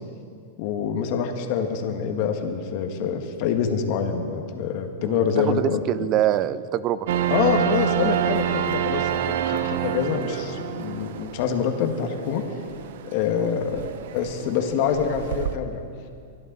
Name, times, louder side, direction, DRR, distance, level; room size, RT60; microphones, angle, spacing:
voice 1, 0.6-6.1 7.3-12.4 13.0-13.9 14.1-15.8, left 7 dB, 55° left, 4 dB, 1.8 m, -26 dB
voice 2, 5.0-7.1 13.4-13.5, right 12 dB, 40° right, 17 dB, 0.5 m, -25 dB
sound 1, 7.1-15.6, right 11 dB, 70° right, 0.8 m, -28 dB
24.5 x 12.0 x 4.1 m, 2.3 s
hypercardioid pair, 120°, 0 cm